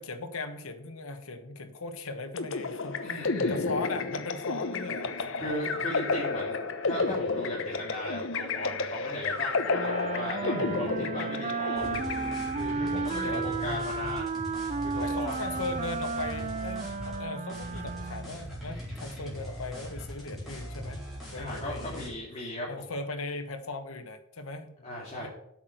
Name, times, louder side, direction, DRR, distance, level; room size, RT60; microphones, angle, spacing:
voice 1, 0.0-5.9 12.7-14.2 15.0-21.0 21.3-22.1 22.7-25.3, left 2 dB, 85° left, 7 dB, 1.3 m, -38 dB
sound 1, 2.4-12.8, left 4 dB, 65° left, 1.0 m, -31 dB
voice 2, 3.0-3.5 5.4-6.6 6.8-11.9 12.5-14.3 14.8-15.5 21.4-22.7 24.8-25.3, left 1 dB, 30° left, -6 dB, 3.0 m, -37 dB
Wind instrument woodwind instrument, 9.7-18.4, right 4 dB, 35° right, 0.6 m, -33 dB
sound 2, 11.8-17.2 17.5-22.1, equal, ahead, 4.4 m, -40 dB
8.5 x 6.1 x 7.7 m, 0.76 s
head